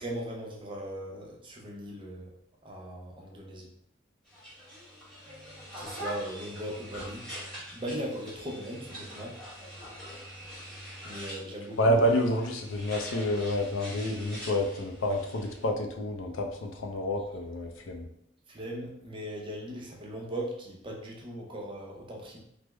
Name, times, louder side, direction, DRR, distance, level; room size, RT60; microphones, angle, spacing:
voice 1, 0.0-2.3 2.6-3.7 5.4-7.2 7.7-9.3 11.0-12.0 18.5-22.4, right 1 dB, 25° right, -1 dB, 0.6 m, -39 dB
sound 1, 4.3-15.6, equal, 5° left, 1.1 m, -44 dB
voice 2, 11.8-18.1, equal, 85° left, 3 dB, 0.5 m, -28 dB
3.3 x 2.0 x 3.2 m, 0.73 s
head